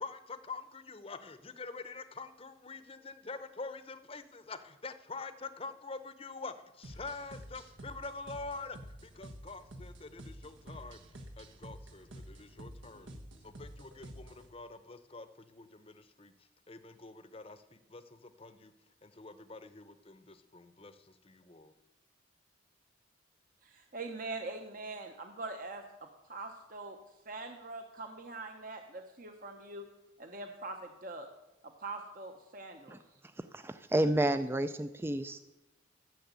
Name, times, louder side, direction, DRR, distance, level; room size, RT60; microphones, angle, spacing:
voice 1, 0.0-8.8 9.0-11.0 11.4-13.1 13.4-16.3 16.7-18.7 19.0-21.7, left 3 dB, 30° left, 11 dB, 0.8 m, -46 dB
sound 1, 6.8-14.5, right 1 dB, 85° right, 1.5 m, -50 dB
voice 2, 23.6-27.0 27.3-29.9 30.2-31.3 31.6-33.0, right 3 dB, 45° right, 4 dB, 0.9 m, -43 dB
voice 3, 33.5-35.4, right 1 dB, 10° right, 11 dB, 0.4 m, -30 dB
14.0 x 7.0 x 8.1 m, 0.96 s
head